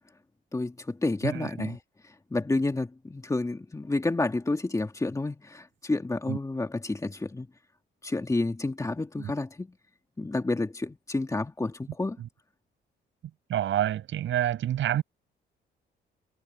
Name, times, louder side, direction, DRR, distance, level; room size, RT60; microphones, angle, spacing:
voice 1, 0.5-7.5 8.0-9.7 10.2-12.2, left 2 dB, 15° left, 2.4 m, -30 dB
voice 2, 1.2-1.8 6.3-6.4 9.2-9.3 13.5-15.0, right 11 dB, 75° right, 7.2 m, -28 dB
cardioid pair, 90°, 20 cm